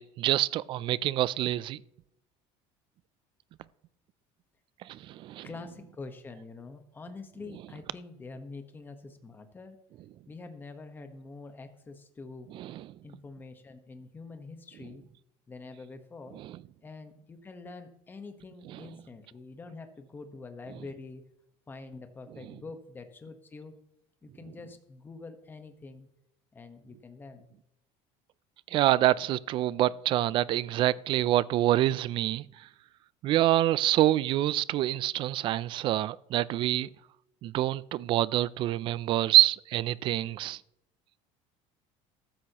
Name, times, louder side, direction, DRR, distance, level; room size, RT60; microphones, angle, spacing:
voice 1, 0.0-1.8 4.8-5.5 12.5-12.9 16.3-16.6 18.7-18.8 28.7-32.5 33.2-36.9 37.4-40.6, right 14 dB, 40° right, 0.4 m, -26 dB
voice 2, 5.4-9.8 10.3-12.5 13.0-15.0 15.5-16.4 16.8-21.2 21.7-23.7 24.2-26.1 26.5-27.5, left 3 dB, 15° left, 1.2 m, -45 dB
14.5 x 13.0 x 3.0 m
cardioid pair, 170°, 14 cm